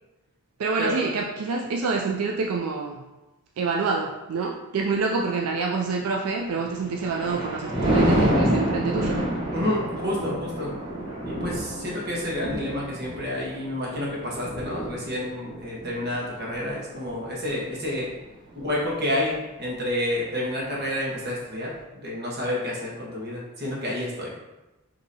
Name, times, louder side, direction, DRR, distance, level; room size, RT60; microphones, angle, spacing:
voice 1, 0.6-3.0 3.6-9.2, right 4 dB, 80° right, 0 dB, 0.4 m, -27 dB
Thunder, 6.6-18.1 18.6-18.9, right 1 dB, 20° right, 1.0 m, -28 dB
voice 2, 9.5-10.7 11.2-18.1 18.5-19.3 19.6-24.3, left 1 dB, 45° right, -4 dB, 1.1 m, -29 dB
5.2 x 2.8 x 2.7 m, 1.0 s
head